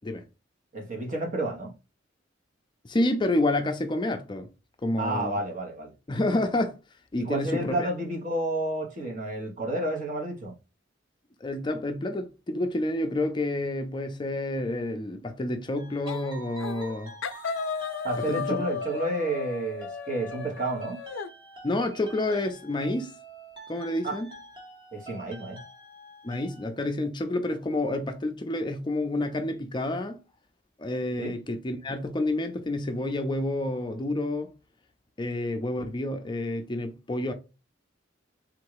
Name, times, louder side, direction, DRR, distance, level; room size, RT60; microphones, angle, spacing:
voice 1, 0.7-1.7 5.0-5.9 7.2-10.5 18.0-21.0 24.0-24.2 24.9-25.6 31.2-31.3, right 2 dB, 40° right, 1.3 m, -30 dB
voice 2, 2.8-4.5 4.8-5.4 6.1-6.8 7.1-7.9 11.4-17.1 18.3-18.6 21.6-23.1 23.7-24.3 26.2-30.2 30.8-34.5 35.2-37.3, left 1 dB, 25° left, 0.5 m, -29 dB
sound 1, 15.8-26.7, right 2 dB, 25° right, 1.4 m, -46 dB
sound 2, 16.1-16.3 16.6-16.9 17.2-21.3, left 6 dB, 75° left, 0.4 m, -34 dB
3.8 x 2.7 x 4.7 m
head